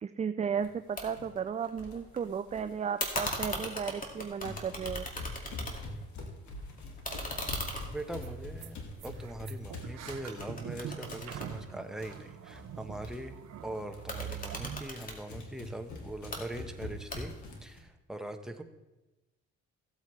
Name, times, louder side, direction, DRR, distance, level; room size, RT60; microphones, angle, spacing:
voice 1, 0.0-5.1, right 7 dB, 25° right, 10 dB, 0.3 m, -34 dB
sound 1, 0.6-0.8 1.1-1.3 1.8-2.7 3.2-4.1 4.4-12.2 12.5-12.7 13.0-13.3 13.6-17.8, left 2 dB, 70° left, 2.0 m, -45 dB
sound 2, 1.0-1.1 1.4-2.2 3.0-6.1 6.4-9.7 10.1-12.3 13.9-15.2 16.1-16.4 17.1-17.6, left 1 dB, 25° left, 2.2 m, -39 dB
sound 3, 7.8-7.9 8.2-8.3 8.6-8.7 9.0-14.8, right 10 dB, 60° right, 0.7 m, -44 dB
voice 2, 7.9-17.3 17.6-18.6, right 1 dB, ahead, 5 dB, 1.1 m, -42 dB
15.5 x 8.2 x 3.3 m, 1.0 s
cardioid pair, 90°, 30 cm